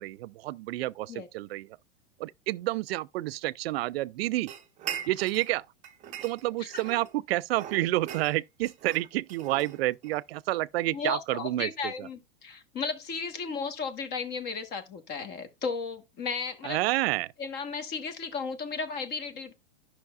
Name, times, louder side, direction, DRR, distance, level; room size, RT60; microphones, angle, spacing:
voice 1, 0.0-1.7 2.2-4.5 5.1-5.7 6.2-12.1 16.6-17.3, right 17 dB, 55° right, 0.4 m, -29 dB
sound 1, 4.5-5.5 5.8-7.1 7.5-10.2, right 9 dB, 20° right, 0.7 m, -41 dB
voice 2, 10.9-16.8 17.4-19.5, left 5 dB, 25° left, 1.3 m, -34 dB
12.0 x 5.7 x 2.4 m
supercardioid pair, 145°, 37 cm